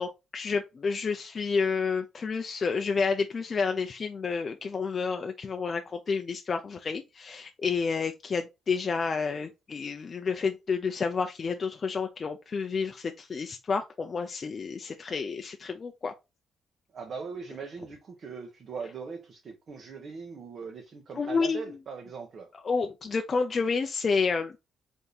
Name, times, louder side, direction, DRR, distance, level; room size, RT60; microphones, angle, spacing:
voice 1, 0.0-16.1 21.1-21.8 22.6-24.5, left 5 dB, 40° left, 0.4 m, -30 dB
voice 2, 16.9-22.5, right 5 dB, 55° right, 0.8 m, -40 dB
3.5 x 2.7 x 3.8 m
cardioid pair, 90°, 0 cm